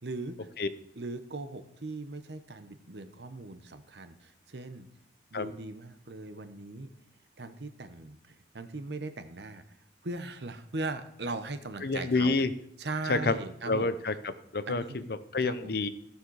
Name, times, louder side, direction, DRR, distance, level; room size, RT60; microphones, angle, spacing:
voice 1, 0.0-0.5 1.0-4.9 5.3-6.9 7.4-12.4 12.8-13.9 14.7-15.0 15.4-15.7, right 2 dB, 70° right, 10 dB, 1.0 m, -39 dB
voice 2, 11.8-12.5 13.1-13.4 13.7-14.1 14.5-15.9, left 3 dB, 60° left, 13 dB, 0.7 m, -28 dB
14.5 x 6.7 x 4.8 m, 0.73 s
head